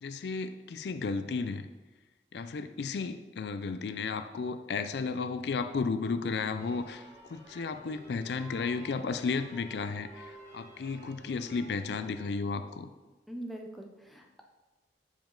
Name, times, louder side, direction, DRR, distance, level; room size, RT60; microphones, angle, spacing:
voice 1, 0.0-1.7 2.3-7.0 7.3-12.9, left 4 dB, 70° left, 10 dB, 0.4 m, -33 dB
sound 1, 6.4-12.3, right 1 dB, 15° right, 1.9 m, -52 dB
voice 2, 13.3-14.4, right 1 dB, ahead, 1 dB, 0.6 m, -42 dB
7.2 x 5.1 x 3.8 m, 1.1 s
head